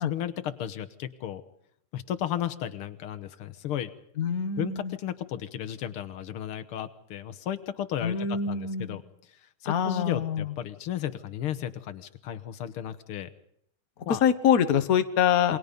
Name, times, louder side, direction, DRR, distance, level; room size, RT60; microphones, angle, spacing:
voice 1, 0.1-1.4 1.9-3.9 4.6-13.3 14.1-14.2 15.5-15.6, left 10 dB, 80° left, 9 dB, 2.0 m, -34 dB
voice 2, 4.2-4.9 8.0-9.0 9.6-10.5 14.2-15.6, left 8 dB, 45° left, 10 dB, 1.6 m, -25 dB
28.0 x 23.0 x 5.3 m, 0.72 s
omnidirectional pair, 2.4 m